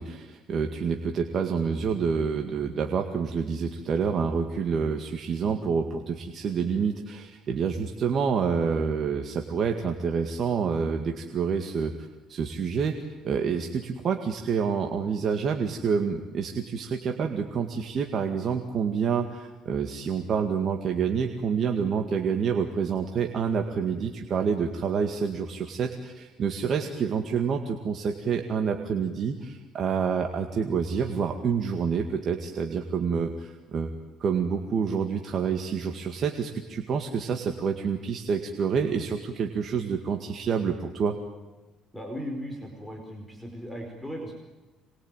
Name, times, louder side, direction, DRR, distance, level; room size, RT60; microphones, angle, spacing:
voice 1, 0.0-11.9 12.3-13.0 13.2-33.9 34.2-41.2, right 6 dB, 45° right, 4 dB, 2.1 m, -28 dB
voice 2, 41.9-44.4, equal, ahead, 1 dB, 4.7 m, -37 dB
26.5 x 21.5 x 9.1 m, 1.2 s
cardioid pair, 130°, 0 cm